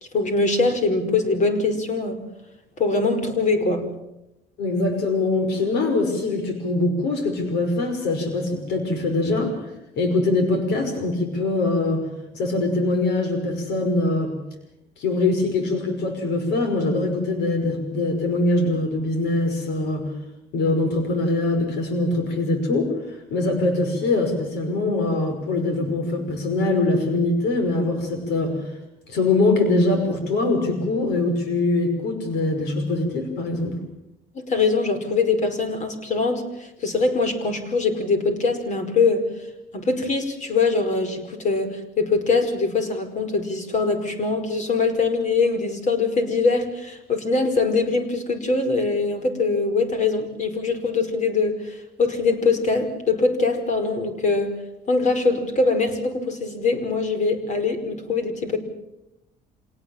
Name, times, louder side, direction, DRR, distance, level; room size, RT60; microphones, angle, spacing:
voice 1, 0.1-2.2 2.8-3.9 34.3-39.2 39.7-54.6 54.9-58.6, left 3 dB, 45° left, 9 dB, 5.1 m, -22 dB
voice 2, 4.6-9.6 10.0-12.0 12.3-14.3 15.0-20.1 20.5-28.6 29.1-33.7, left 2 dB, 80° left, 6 dB, 5.9 m, -23 dB
26.5 x 19.0 x 7.3 m, 0.88 s
cardioid pair, 110°, 17 cm